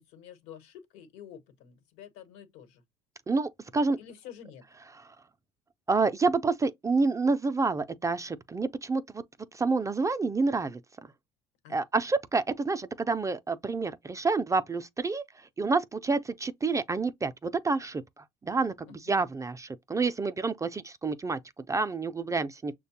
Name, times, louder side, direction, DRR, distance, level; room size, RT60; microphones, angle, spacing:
voice 1, 0.0-2.8 4.0-4.6 11.6-11.8 18.9-19.2, left 9 dB, 75° left, 1.1 m, -49 dB
voice 2, 3.3-4.0 5.0-5.1 5.9-9.2 9.5-10.8 11.7-15.2 15.6-21.4 21.7-22.7, right 4 dB, 15° right, 0.4 m, -28 dB
6.3 x 2.2 x 2.8 m
supercardioid pair, 80°, 18 cm